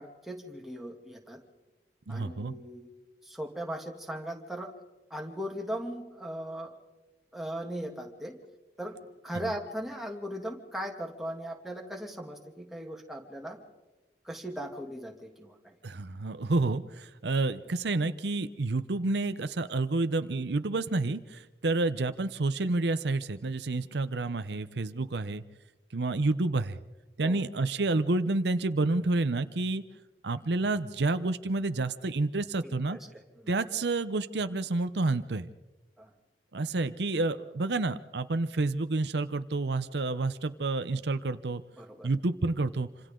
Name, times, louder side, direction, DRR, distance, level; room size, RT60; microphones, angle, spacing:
voice 1, 0.0-1.4 2.1-2.9 3.2-4.7 5.1-6.7 7.3-8.4 8.8-9.0 9.2-13.6 14.2-15.8 27.2-27.4 32.6-33.5 36.0-36.1 41.8-42.1, equal, ahead, 0 dB, 2.5 m, -38 dB
voice 2, 2.1-2.5 15.8-25.4 25.9-26.8 27.2-29.8 30.2-33.0 33.5-35.5 36.5-41.6 42.0-42.9, right 2 dB, 75° right, 11 dB, 0.7 m, -29 dB
27.5 x 26.5 x 3.8 m, 1.1 s
head